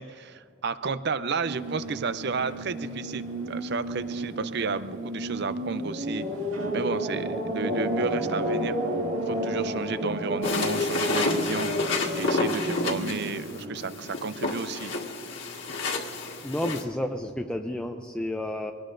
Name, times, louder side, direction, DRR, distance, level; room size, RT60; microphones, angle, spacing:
voice 1, 0.0-6.2 6.7-8.8 9.3-11.7 12.1-14.9, right 4 dB, 50° right, 13 dB, 0.5 m, -32 dB
sound 1, 1.4-14.1, equal, 75° right, 2.1 m, -31 dB
sound 2, 10.4-16.8, left 3 dB, 55° left, 1.7 m, -30 dB
voice 2, 16.4-18.7, left 1 dB, 5° left, 3 dB, 0.4 m, -31 dB
24.0 x 19.0 x 2.6 m, 2.6 s
head